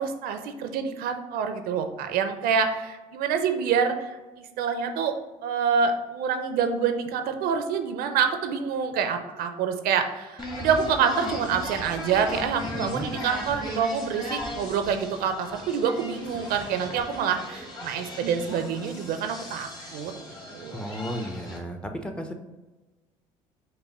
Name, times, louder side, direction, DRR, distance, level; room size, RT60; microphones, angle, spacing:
voice 1, 0.0-5.2 5.4-20.1 20.5-20.8, right 6 dB, 60° right, 7 dB, 0.5 m, -27 dB
sound 1, 10.4-21.6, left 1 dB, 25° left, 1.3 m, -37 dB
voice 2, 12.7-13.1 20.7-22.3, equal, 5° left, 4 dB, 0.6 m, -34 dB
5.4 x 2.1 x 4.4 m, 1.2 s
hypercardioid pair, 65°, 17 cm